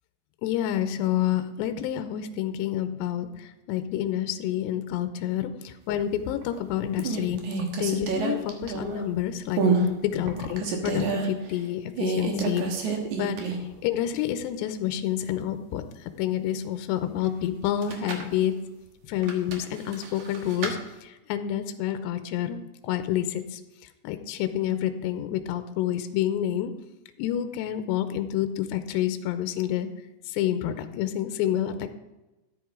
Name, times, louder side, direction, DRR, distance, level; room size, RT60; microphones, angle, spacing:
voice 1, 0.4-3.3 3.7-7.4 7.8-9.6 10.0-13.4 13.8-15.8 16.2-18.5 19.1-20.8 21.3-23.6 24.0-26.7 27.2-29.9 30.3-31.9, left 11 dB, 80° left, 9 dB, 2.8 m, -28 dB
sound 1, 6.2-6.6 7.0-9.1 9.5-9.9 10.3-11.3 12.0-13.7 14.1-14.2 17.6-18.3 19.2-20.8, right 4 dB, 60° right, 2.2 m, -28 dB
13.5 x 10.5 x 3.7 m, 1.0 s
omnidirectional pair, 5.1 m